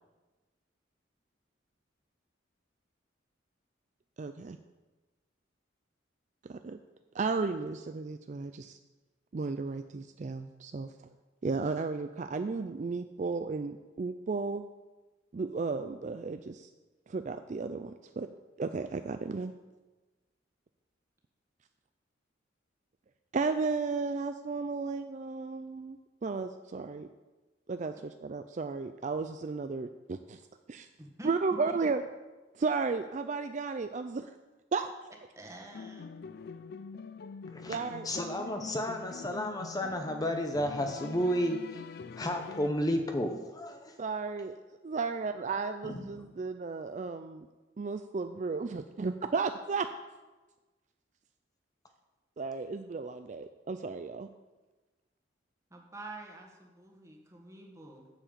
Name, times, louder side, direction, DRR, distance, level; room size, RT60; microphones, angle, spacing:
voice 1, 4.2-4.6 6.4-6.8 7.1-8.8 9.3-10.9 11.4-14.6 15.3-16.7 17.1-18.3 18.6-19.5 23.3-27.1 27.7-30.4 30.7-30.9 31.2-32.0 32.5-34.3 34.7-34.9 37.7-38.1 44.0-44.6 44.8-47.5 47.8-49.9 52.4-54.3, right 4 dB, 40° right, 9 dB, 0.4 m, -34 dB
voice 2, 31.0-31.3 31.8-31.9 35.3-36.1 55.7-58.1, right 2 dB, 15° right, 1 dB, 1.6 m, -47 dB
sound 1, 35.7-42.7, left 5 dB, 55° left, 0.4 m, -45 dB
voice 3, 38.0-41.8 42.2-44.0 45.8-46.3, equal, 20° left, 5 dB, 0.8 m, -32 dB
8.7 x 7.3 x 7.4 m, 1.2 s
head